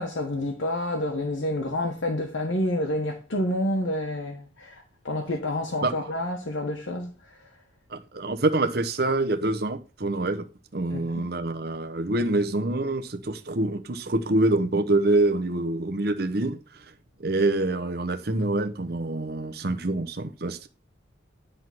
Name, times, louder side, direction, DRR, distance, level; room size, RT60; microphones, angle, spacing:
voice 1, 0.0-7.5 10.9-11.2, left 1 dB, 80° left, 1.3 m, -29 dB
voice 2, 7.9-10.4 10.7-16.6 17.2-20.7, right 2 dB, 50° right, 0.9 m, -26 dB
9.8 x 3.7 x 6.0 m
head